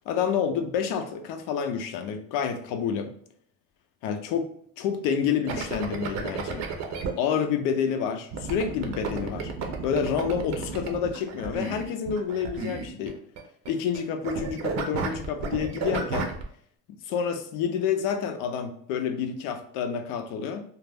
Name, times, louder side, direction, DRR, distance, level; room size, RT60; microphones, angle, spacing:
voice 1, 0.1-3.1 4.0-4.5 4.8-6.6 7.2-9.5 9.8-13.2 13.7-16.3 16.9-20.6, left 7 dB, 75° left, 7 dB, 0.5 m, -28 dB
sound 1, 5.5-7.1 8.3-14.0 14.2-16.4, right 5 dB, 55° right, 0.6 m, -32 dB
2.4 x 2.0 x 3.3 m, 0.63 s
supercardioid pair, 95°, 32 cm